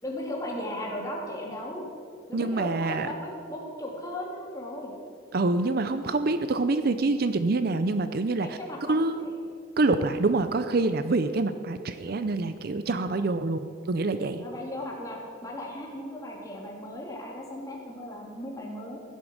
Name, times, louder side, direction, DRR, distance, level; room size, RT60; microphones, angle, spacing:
voice 1, 0.0-1.9 2.3-4.9 8.4-9.3 14.4-19.0, left 1 dB, 15° left, -3 dB, 2.8 m, -36 dB
voice 2, 2.3-3.1 5.3-9.3 9.8-14.4, right 3 dB, 50° right, 10 dB, 0.5 m, -26 dB
16.0 x 10.5 x 6.4 m, 2.3 s
head